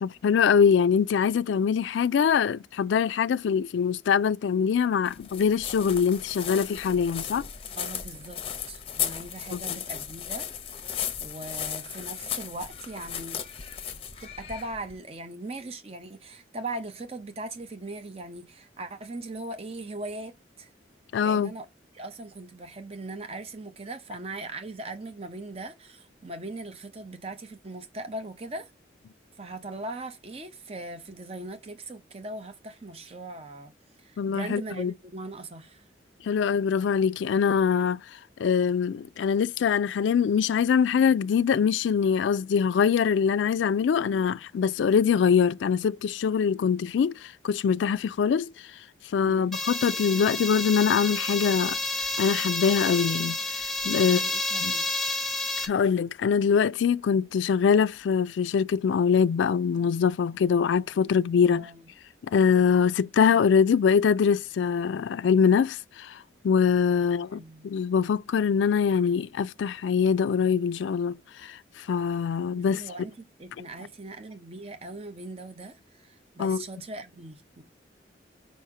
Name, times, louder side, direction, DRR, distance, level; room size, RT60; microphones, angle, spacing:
voice 1, 0.0-7.5 9.5-9.6 21.1-21.5 34.2-34.9 36.2-38.0 38.4-48.5 49.1-51.8 52.2-54.2 54.6-54.7 55.6-61.7 62.3-66.2 66.4-72.8 76.4-76.6, left 6 dB, 85° left, 0.3 m, -23 dB
sound 1, 5.1-14.9, left 8 dB, 30° left, 0.7 m, -35 dB
voice 2, 7.8-10.5 11.2-13.4 14.2-20.7 21.2-21.7 21.9-28.7 29.4-33.7 34.0-35.8 49.2-49.6 54.0-55.1 61.5-61.8 67.0-67.7 72.5-77.6, right 2 dB, 30° right, 0.8 m, -40 dB
sound 2, 49.5-55.7, left 2 dB, ahead, 1.4 m, -30 dB
5.2 x 4.2 x 4.8 m
head